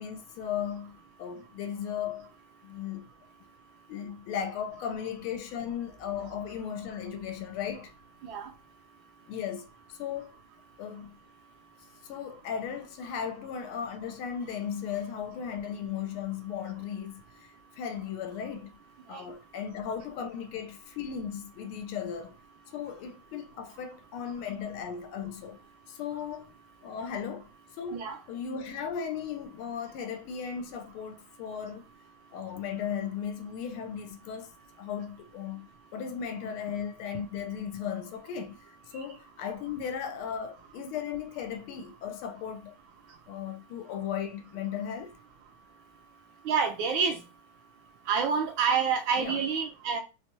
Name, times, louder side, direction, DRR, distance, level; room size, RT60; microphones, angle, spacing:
voice 1, 0.0-2.3 2.6-3.1 3.9-7.9 9.3-10.4 10.8-11.2 12.0-18.8 19.1-22.4 22.7-25.6 25.9-26.5 26.8-27.5 27.8-31.9 32.3-34.5 34.8-42.8 43.3-45.2 49.2-49.4, left 8 dB, 80° left, 1.4 m, -36 dB
voice 2, 46.4-47.2 48.1-50.0, right 6 dB, 75° right, 1.3 m, -27 dB
4.2 x 2.2 x 2.9 m
omnidirectional pair, 2.4 m